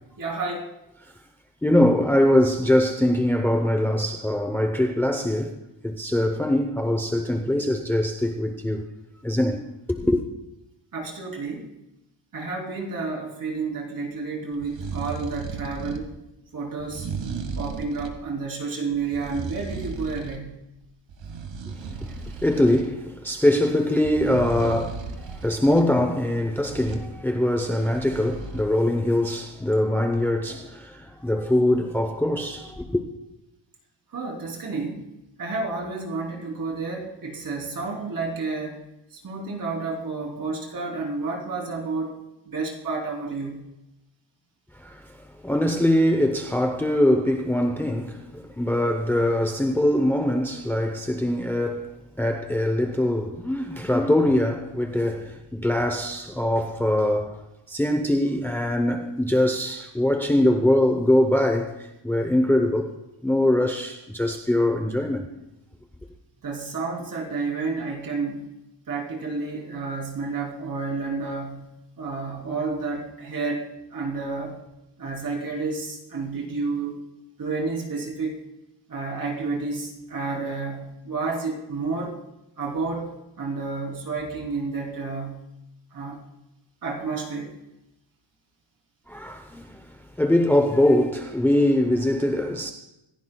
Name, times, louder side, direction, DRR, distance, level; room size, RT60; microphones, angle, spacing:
voice 1, 0.2-0.7 10.9-11.7 12.3-16.1 16.5-17.1 17.5-20.6 34.1-35.1 35.4-38.8 39.2-42.1 42.5-43.6 66.4-68.5 68.9-71.7 72.0-74.6 75.0-77.0 77.4-78.4 78.9-82.1 82.6-85.4 85.9-86.2 86.8-87.5, right 4 dB, 50° right, 3.4 m, -30 dB
voice 2, 1.6-5.5 5.8-8.9 9.2-9.6 9.9-10.2 21.7-21.8 22.4-33.0 44.8-45.0 45.4-57.4 57.7-62.9 63.2-65.3 89.1-89.7 90.2-92.7, left 1 dB, 5° left, 0.7 m, -22 dB
sound 1, 14.5-16.1 16.8-18.2 18.9-20.5 20.8-22.9 24.0-25.9 26.6-27.1 27.6-28.6, right 5 dB, 75° right, 1.8 m, -35 dB
27.0 x 15.5 x 2.3 m
wide cardioid pair, 175°, 44 cm